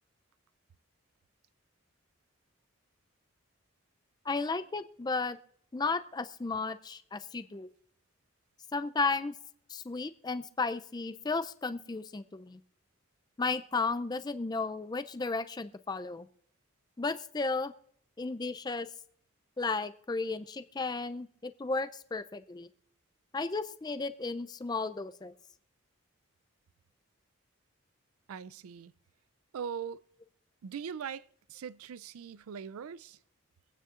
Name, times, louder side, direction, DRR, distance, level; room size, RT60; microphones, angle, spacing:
voice 1, 4.3-5.4 5.7-7.7 8.7-9.3 9.7-12.6 13.4-16.3 17.0-17.7 18.2-18.9 19.6-22.7 23.3-25.3, left 3 dB, 20° left, 0.4 m, -34 dB
voice 2, 28.3-28.9 29.5-30.0 30.6-33.2, right 7 dB, 90° right, 0.4 m, -41 dB
25.0 x 9.3 x 2.5 m
head